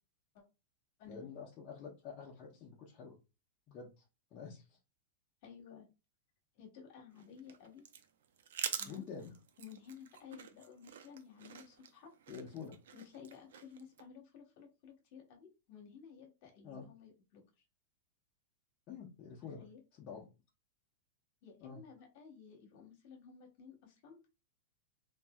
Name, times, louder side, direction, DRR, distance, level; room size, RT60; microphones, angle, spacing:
voice 1, 1.1-3.2 3.7-4.0 4.3-4.8 8.9-9.4 12.3-12.8 16.6-16.9 18.9-19.7 19.9-20.2 21.6-21.8, left 6 dB, 35° left, -4 dB, 0.7 m, -48 dB
voice 2, 5.4-5.9 6.5-7.8 8.7-9.1 9.6-12.1 12.9-17.4 19.6-19.8 21.4-24.3, left 7 dB, 50° left, 2 dB, 1.2 m, -54 dB
sound 1, 7.1-14.0, right 8 dB, 80° right, 0.4 m, -46 dB
3.1 x 2.6 x 2.2 m, 0.28 s
supercardioid pair, 145°, 0 cm